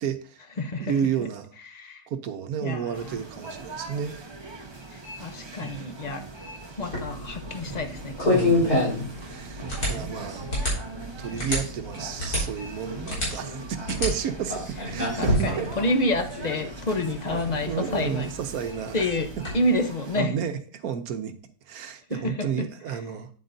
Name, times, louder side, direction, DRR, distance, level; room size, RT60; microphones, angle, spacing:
voice 1, 0.0-0.4 0.8-1.5 2.1-4.2 5.6-6.3 8.3-10.5 11.2-15.7 17.7-19.4 20.2-21.3 21.7-23.3, right 8 dB, 70° right, 9 dB, 1.2 m, -32 dB
voice 2, 0.6-0.9 1.7-2.0 2.6-3.1 5.2-6.2 6.8-8.7 15.2-18.3 18.9-19.3 19.5-20.3 22.1-22.7, left 1 dB, 40° left, 6 dB, 0.6 m, -28 dB
sound 1, 2.9-20.2, right 3 dB, 25° right, 0.6 m, -41 dB
sound 2, 6.8-19.6, left 1 dB, 75° left, 4.3 m, -29 dB
8.7 x 7.8 x 2.7 m, 0.41 s
omnidirectional pair, 1.7 m